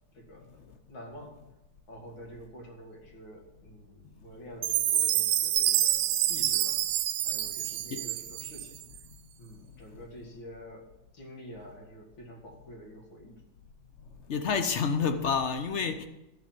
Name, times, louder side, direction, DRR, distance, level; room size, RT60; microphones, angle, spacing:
voice 1, 0.1-0.5 0.9-1.3 1.9-6.8 7.2-8.8 9.4-10.9 11.1-13.4, equal, 75° left, 3.1 m, -48 dB
Chime, 4.6-8.8, right 13 dB, 80° right, 1.3 m, -27 dB
voice 2, 14.3-16.1, left 5 dB, 55° left, 0.8 m, -28 dB
13.0 x 6.9 x 7.6 m
omnidirectional pair, 2.1 m